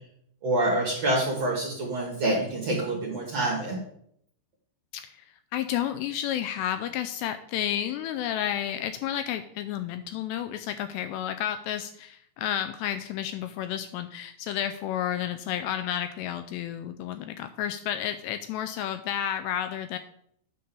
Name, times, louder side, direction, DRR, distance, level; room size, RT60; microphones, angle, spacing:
voice 1, 0.4-3.8, right 1 dB, 55° right, -3 dB, 1.9 m, -26 dB
voice 2, 5.5-20.0, left 10 dB, 85° left, 9 dB, 2.5 m, -31 dB
9.4 x 3.8 x 6.9 m, 0.69 s
omnidirectional pair, 5.2 m